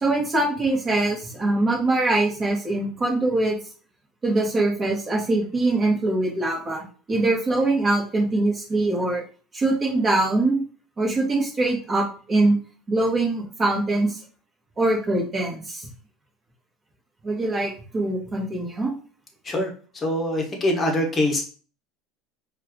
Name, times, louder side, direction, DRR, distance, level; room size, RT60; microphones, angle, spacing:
voice 1, 0.0-3.5 4.2-9.2 9.5-10.6 11.0-12.6 12.9-14.2 14.8-15.9 17.2-18.9, right 2 dB, 25° right, -2 dB, 1.4 m, -23 dB
voice 2, 20.0-21.4, left 1 dB, 20° left, 2 dB, 1.0 m, -23 dB
4.5 x 2.4 x 3.0 m, 0.40 s
supercardioid pair, 135°, 0 cm